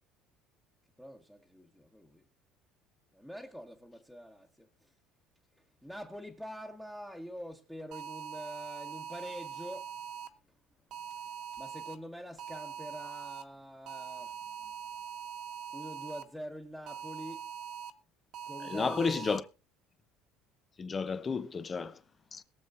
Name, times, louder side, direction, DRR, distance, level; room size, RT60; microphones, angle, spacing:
voice 1, 1.0-2.2 3.1-4.9 5.6-9.9 11.2-14.7 15.7-17.5 18.4-19.3, equal, 5° left, 1.4 m, -45 dB
sound 1, 7.9-10.3 10.9-12.0 12.4-13.4 13.9-16.2 16.9-17.9 18.3-19.4, right 8 dB, 55° right, 1.5 m, -42 dB
voice 2, 18.6-19.4 20.8-22.0 22.3-22.4, left 5 dB, 25° left, 0.9 m, -32 dB
21.5 x 7.4 x 2.7 m
cardioid pair, 130°, 0 cm